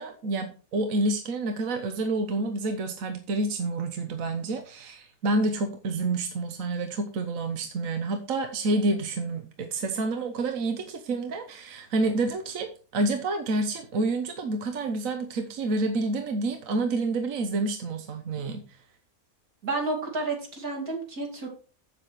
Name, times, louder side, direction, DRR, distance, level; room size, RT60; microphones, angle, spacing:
voice 1, 0.0-18.6, right 2 dB, 65° right, 6 dB, 1.3 m, -28 dB
voice 2, 19.6-21.5, right 3 dB, 90° right, 0 dB, 3.3 m, -30 dB
8.1 x 7.6 x 4.6 m, 0.37 s
omnidirectional pair, 1.5 m